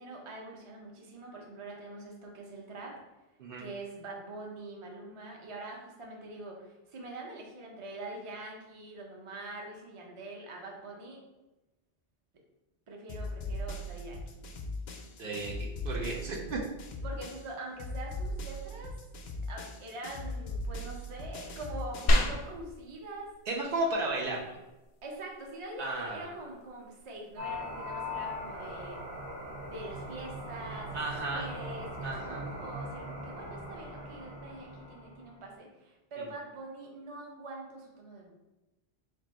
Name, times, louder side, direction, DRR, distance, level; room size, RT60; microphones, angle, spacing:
voice 1, 0.0-2.9 3.6-11.2 12.9-14.2 17.0-18.9 19.5-23.3 25.0-29.0 29.7-38.3, right 2 dB, 35° right, 0 dB, 0.6 m, -44 dB
sound 1, 13.1-17.5 17.8-22.4, left 1 dB, 55° left, 0.6 m, -39 dB
voice 2, 15.2-16.6 23.5-24.6 25.8-26.3 30.9-31.5 32.0-32.5 36.2-36.3, right 2 dB, 65° right, -2 dB, 0.8 m, -34 dB
sound 2, 22.1-32.1, left 1 dB, 85° left, 0.9 m, -36 dB
sound 3, 27.4-35.3, left 1 dB, 85° right, 1.3 m, -40 dB
3.4 x 2.5 x 4.2 m, 1.0 s
omnidirectional pair, 1.0 m